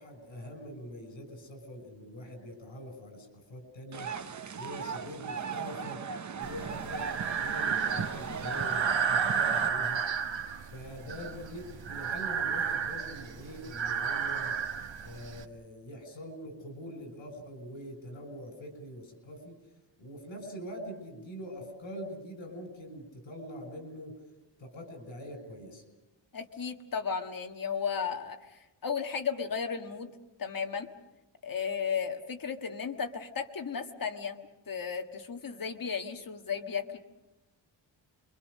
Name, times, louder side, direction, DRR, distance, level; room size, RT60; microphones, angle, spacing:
voice 1, 0.0-4.1 4.5-6.0 6.3-10.0 10.7-14.6 15.0-19.5 20.0-24.2 24.6-25.8, equal, 75° left, 6 dB, 5.8 m, -44 dB
sound 1, 3.9-9.7, right 6 dB, 40° right, 0.8 m, -38 dB
Breathing, 6.4-15.4, right 6 dB, 70° right, 1.6 m, -32 dB
voice 2, 26.3-30.1 30.4-30.9 31.4-34.4 34.7-37.0, left 6 dB, 45° left, 4 dB, 1.6 m, -34 dB
28.0 x 23.5 x 6.4 m, 1.0 s
wide cardioid pair, 180°, 46 cm